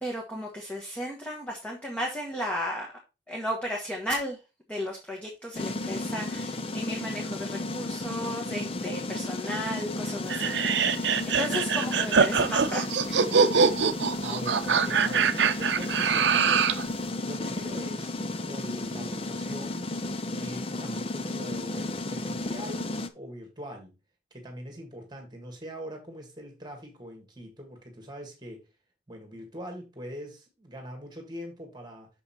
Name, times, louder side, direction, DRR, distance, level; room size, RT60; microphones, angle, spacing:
voice 1, 0.0-2.9 3.3-4.4 4.7-10.5 10.8-12.8 13.1-13.2, equal, 5° left, 1.3 m, -34 dB
sound 1, 5.5-23.1, left 2 dB, 30° left, 0.5 m, -33 dB
sound 2, 10.3-16.9, right 6 dB, 70° right, 0.6 m, -24 dB
voice 2, 14.2-16.8 17.2-19.9 20.3-24.0 24.3-28.7 29.1-32.1, equal, 20° right, 1.8 m, -42 dB
6.7 x 5.6 x 4.2 m
head